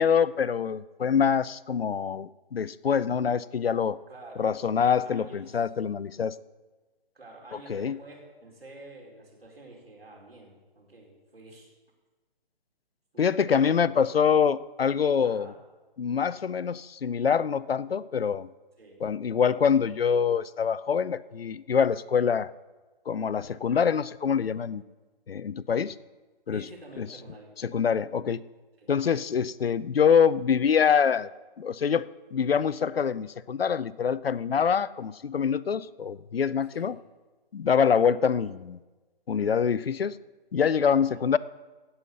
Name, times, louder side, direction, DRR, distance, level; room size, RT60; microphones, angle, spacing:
voice 1, 0.0-4.0 4.4-6.4 7.7-8.0 13.2-15.5 16.0-18.5 19.0-22.5 23.1-24.8 25.3-25.9 26.5-26.6 27.0-27.1 27.6-28.4 28.9-31.3 31.6-36.9 37.5-38.8 39.3-40.1 40.5-41.4, left 7 dB, 85° left, 19 dB, 0.6 m, -25 dB
voice 2, 4.1-4.5 5.0-5.7 7.1-11.7 13.1-13.7 15.2-15.6 18.8-19.0 26.5-27.5 28.8-28.9 36.7-36.9 40.8-41.3, right 2 dB, 90° right, -1 dB, 4.7 m, -48 dB
16.0 x 5.7 x 8.0 m, 1.2 s
figure-of-eight pair, 145°, 29 cm